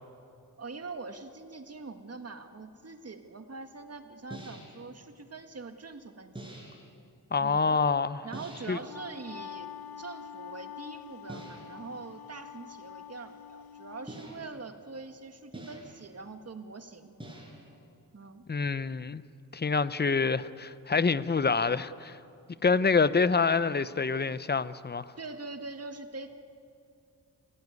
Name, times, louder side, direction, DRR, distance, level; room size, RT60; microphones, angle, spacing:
voice 1, 0.6-6.6 7.4-7.8 8.2-9.7 10.0-17.1 18.1-18.4 25.2-26.3, right 3 dB, 45° right, 1.6 m, -43 dB
sound 1, 4.3-4.9 6.3-6.9 8.3-8.9 11.3-11.8 14.1-14.7 15.5-16.1 17.2-17.8, right 1 dB, 15° right, 5.6 m, -45 dB
voice 2, 7.3-8.3 8.7-8.8 18.5-19.2 19.5-22.2 22.6-25.1, left 4 dB, 30° left, 0.7 m, -26 dB
Wind instrument woodwind instrument, 8.7-14.1, left 10 dB, 90° left, 0.9 m, -46 dB
27.5 x 17.0 x 9.5 m
wide cardioid pair, 115°, 35 cm